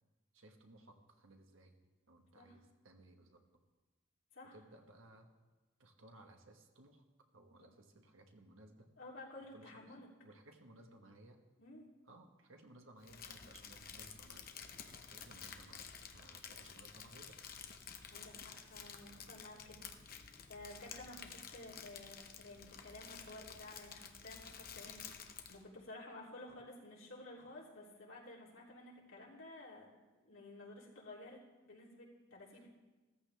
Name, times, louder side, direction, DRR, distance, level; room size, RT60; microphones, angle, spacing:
voice 1, 0.3-1.7 2.1-3.4 4.5-5.3 5.8-7.1 7.3-8.9 9.5-10.0 10.2-11.4 12.0-14.5 15.1-17.4 32.5-32.7, right 1 dB, 85° right, 4 dB, 1.4 m, -60 dB
voice 2, 9.0-10.1 11.6-11.9 18.1-29.9 30.3-32.7, left 2 dB, 85° left, -4 dB, 3.2 m, -53 dB
Crumpling crinkling, 13.0-25.6, left 7 dB, 45° left, 0.9 m, -52 dB
15.5 x 14.0 x 3.4 m, 1.2 s
head